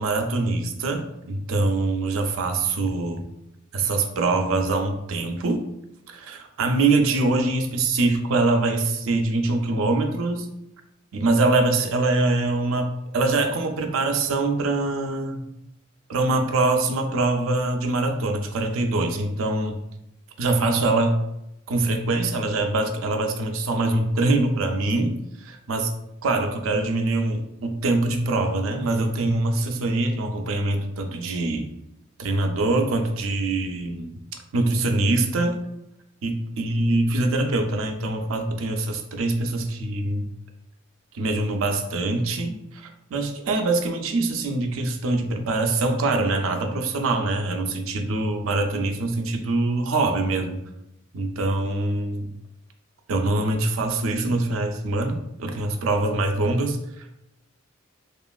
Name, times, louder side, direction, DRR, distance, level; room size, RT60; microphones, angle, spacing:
voice 1, 0.0-3.2 3.7-5.7 6.1-10.5 11.1-15.4 16.1-19.8 20.4-21.2 21.7-25.9 26.2-31.7 32.2-34.2 34.5-35.6 36.2-40.3 41.1-50.6 51.1-52.3 53.1-57.1, right 2 dB, 75° right, 4 dB, 0.4 m, -24 dB
3.0 x 2.4 x 2.3 m, 0.86 s
head